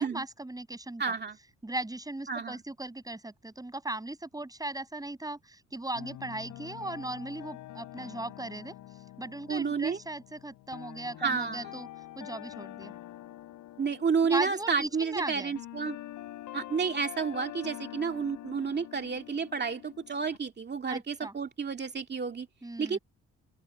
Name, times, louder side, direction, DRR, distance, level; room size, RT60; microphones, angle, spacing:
voice 1, 0.0-1.1 1.6-8.7 9.2-11.9 12.2-12.9 14.2-15.5 20.9-21.3 22.6-23.0, right 2 dB, 10° right, 6.3 m, -38 dB
voice 2, 1.0-1.4 2.3-2.6 9.5-10.0 11.2-11.7 13.8-16.0 16.5-22.5 22.8-23.0, right 5 dB, 35° right, 2.1 m, -30 dB
sound 1, 5.9-20.4, left 14 dB, 85° left, 3.8 m, -46 dB
open air
cardioid pair, 90°, 30 cm